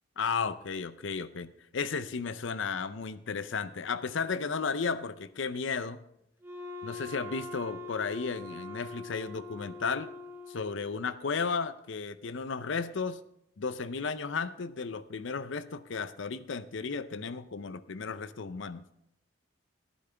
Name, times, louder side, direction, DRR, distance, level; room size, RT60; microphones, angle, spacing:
voice 1, 0.2-6.0 6.8-10.1 10.5-13.2 13.6-18.8, left 5 dB, 65° left, 14 dB, 0.5 m, -34 dB
Wind instrument woodwind instrument, 6.4-11.1, left 3 dB, 10° right, 0.8 m, -43 dB
15.0 x 9.6 x 3.4 m, 0.77 s
head